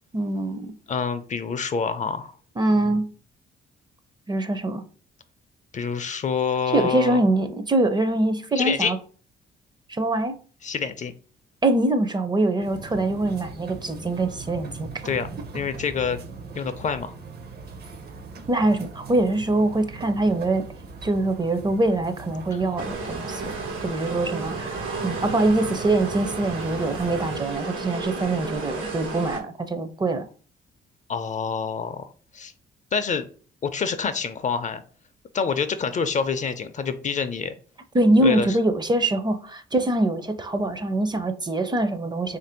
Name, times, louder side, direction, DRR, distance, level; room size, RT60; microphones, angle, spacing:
voice 1, 0.1-0.8 2.6-3.1 4.3-4.8 6.7-9.0 9.9-10.4 11.6-14.9 18.5-20.6 21.0-23.5 23.8-24.7 25.0-30.3 37.9-42.4, right 2 dB, 20° right, 0.5 m, -23 dB
voice 2, 0.9-2.3 2.8-3.0 5.7-7.2 8.6-8.9 10.6-11.1 15.0-15.3 15.5-16.2 16.5-17.1 31.1-32.5 32.9-33.3 33.6-34.8 35.3-37.5 38.2-38.6, left 6 dB, 40° left, 0.4 m, -27 dB
sound 1, 12.6-27.4, right 4 dB, 55° right, 0.7 m, -40 dB
sound 2, 22.8-29.4, right 3 dB, 85° right, 1.1 m, -32 dB
3.2 x 2.5 x 4.3 m
cardioid pair, 90°, 20 cm